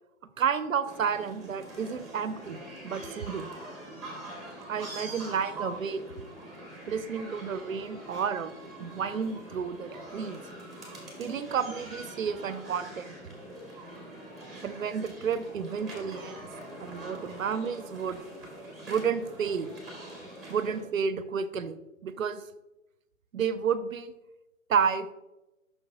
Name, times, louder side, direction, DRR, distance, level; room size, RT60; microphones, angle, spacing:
voice 1, 0.4-3.5 4.7-6.0 6.9-8.5 8.8-10.4 11.2-13.1 14.6-16.4 16.8-18.2 18.9-19.7 20.5-22.4 23.3-24.1 24.7-25.1, right 6 dB, 70° right, 13 dB, 0.6 m, -31 dB
sound 1, 0.9-20.8, right 1 dB, ahead, 1.3 m, -44 dB
6.5 x 6.1 x 2.8 m, 0.99 s
figure-of-eight pair, 130°, 41 cm